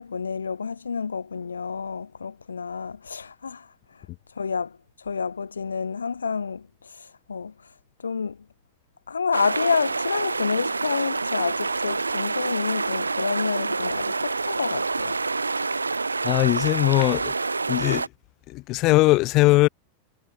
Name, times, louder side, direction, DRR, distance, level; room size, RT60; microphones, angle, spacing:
voice 1, 0.0-7.7 8.0-8.5 9.1-15.2, left 5 dB, 75° left, 4.3 m, -29 dB
sound 1, 9.3-18.1, right 3 dB, 80° right, 1.4 m, -27 dB
voice 2, 16.2-17.3 17.7-18.0 18.5-19.7, left 20 dB, 40° left, 4.3 m, -20 dB
figure-of-eight pair, 90°, 0 cm